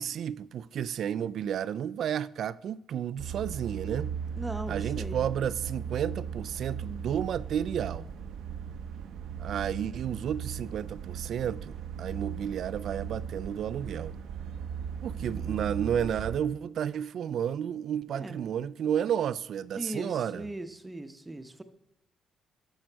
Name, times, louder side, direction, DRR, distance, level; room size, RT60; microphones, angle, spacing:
voice 1, 0.0-4.1 4.7-8.1 9.4-14.2 15.0-20.5, right 9 dB, 65° right, 0.3 m, -32 dB
sound 1, 3.2-16.4, right 7 dB, 85° right, 0.8 m, -37 dB
voice 2, 4.4-5.2 15.1-15.9 18.1-18.4 19.7-21.6, right 1 dB, 15° right, 0.8 m, -40 dB
12.0 x 6.3 x 4.5 m
cardioid pair, 90°, 0 cm